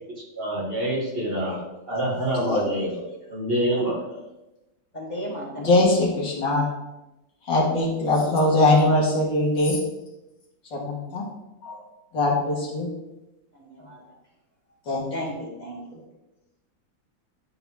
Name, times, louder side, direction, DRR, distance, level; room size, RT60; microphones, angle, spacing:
voice 1, 0.4-3.0 3.3-4.2, right 1 dB, 30° right, -4 dB, 1.9 m, -26 dB
voice 2, 4.9-5.7 13.6-14.0 15.1-16.0, equal, 25° left, -3 dB, 1.4 m, -35 dB
voice 3, 5.6-6.7 7.5-9.8 10.7-11.2 11.6-11.7 12.1-12.9 14.9-15.0, left 2 dB, 70° left, -4 dB, 2.5 m, -21 dB
11.0 x 4.0 x 3.5 m, 0.98 s
omnidirectional pair, 2.0 m